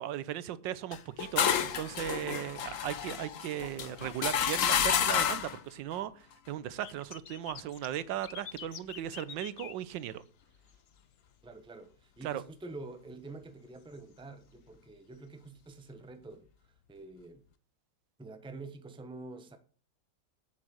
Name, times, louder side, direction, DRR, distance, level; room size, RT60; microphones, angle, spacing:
voice 1, 0.0-10.2 12.2-12.4, right 11 dB, 90° right, 1.4 m, -37 dB
sound 1, 0.9-5.6, left 8 dB, 55° left, 1.1 m, -30 dB
sound 2, 6.8-11.0 11.2-11.6 12.0-12.1 13.4-13.5 13.9-14.0 15.1-15.2 15.9-16.0, left 9 dB, 75° left, 0.5 m, -47 dB
voice 2, 11.4-16.5 16.9-17.5 18.2-19.6, right 3 dB, 5° right, 0.7 m, -47 dB
8.3 x 7.4 x 6.4 m
omnidirectional pair, 1.9 m